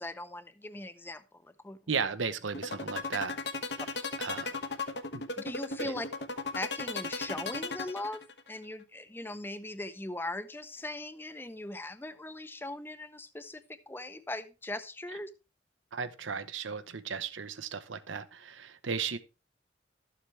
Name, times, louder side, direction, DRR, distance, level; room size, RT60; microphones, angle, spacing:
voice 1, 0.0-1.8 5.4-6.1 6.5-15.3, left 2 dB, 10° left, 0.6 m, -40 dB
voice 2, 1.9-3.4 4.2-4.5 5.1-5.2 5.8-5.9 15.9-19.2, right 5 dB, 90° right, 0.9 m, -35 dB
sound 1, 2.5-8.5, left 3 dB, 65° left, 1.2 m, -35 dB
13.0 x 7.4 x 3.3 m
head